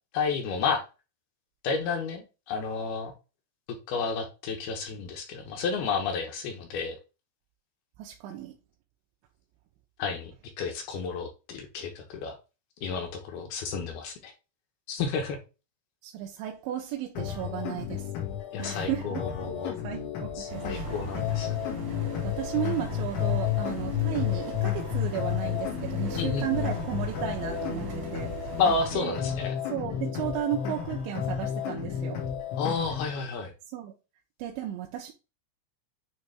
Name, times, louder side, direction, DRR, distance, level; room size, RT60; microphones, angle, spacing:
voice 1, 0.1-0.8 1.6-3.1 3.9-7.0 10.0-10.3 10.6-12.3 12.8-14.3 14.9-15.4 18.5-19.7 20.4-21.5 26.2-26.7 28.6-29.5 32.6-33.5, left 5 dB, 70° left, 2.6 m, -31 dB
voice 2, 8.0-8.6 16.0-18.1 18.6-19.2 19.8-21.2 22.2-28.3 28.9-29.3 29.7-32.2 33.7-33.9 34.4-35.1, right 12 dB, 85° right, 3.1 m, -34 dB
sound 1, 17.2-33.2, left 11 dB, 90° left, 4.3 m, -32 dB
sound 2, 20.5-29.0, right 5 dB, 55° right, 1.5 m, -39 dB
9.2 x 3.3 x 3.4 m
omnidirectional pair, 5.3 m